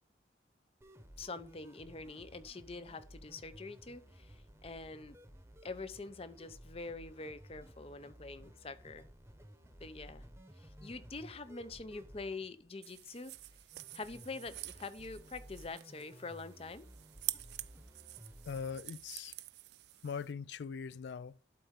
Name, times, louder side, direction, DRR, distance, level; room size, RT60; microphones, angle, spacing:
sound 1, 0.8-18.8, equal, 15° right, 0.9 m, -56 dB
voice 1, 1.2-5.2 5.6-9.0 9.8-10.3 10.6-13.3 13.9-16.9, left 3 dB, 30° left, 0.6 m, -45 dB
sound 2, 12.8-20.3, right 18 dB, 60° right, 0.4 m, -47 dB
voice 2, 18.5-19.3 20.0-21.4, left 6 dB, 70° left, 0.3 m, -41 dB
11.5 x 4.2 x 3.7 m
head